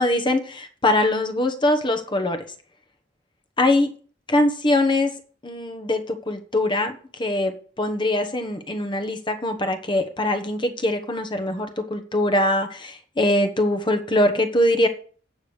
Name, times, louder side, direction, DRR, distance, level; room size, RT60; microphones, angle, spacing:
voice 1, 0.0-2.4 3.6-3.9 4.3-5.1 5.4-14.9, left 1 dB, 25° left, 7 dB, 1.1 m, -22 dB
8.8 x 5.0 x 7.2 m, 0.43 s
head